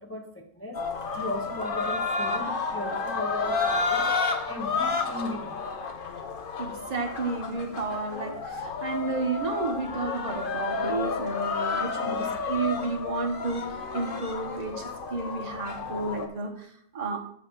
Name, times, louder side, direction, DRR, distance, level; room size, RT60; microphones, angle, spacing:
voice 1, 0.0-4.2 4.4-5.6 11.9-12.4, left 1 dB, 20° left, 1 dB, 0.3 m, -38 dB
sound 1, 0.7-16.3, left 4 dB, 50° left, 0.7 m, -31 dB
voice 2, 6.6-17.2, right 3 dB, 30° right, 1 dB, 1.0 m, -32 dB
7.3 x 3.5 x 6.1 m, 0.67 s
omnidirectional pair, 1.6 m